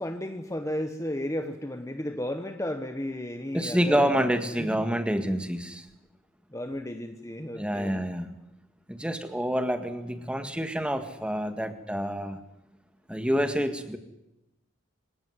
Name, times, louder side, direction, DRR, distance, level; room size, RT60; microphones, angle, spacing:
voice 1, 0.0-4.8 5.3-5.4 6.5-8.1, left 1 dB, 15° left, 7 dB, 1.2 m, -34 dB
voice 2, 3.5-5.9 7.5-8.3 8.9-12.4 13.1-14.0, equal, 5° right, 9 dB, 1.8 m, -27 dB
25.5 x 17.5 x 9.7 m, 0.93 s
head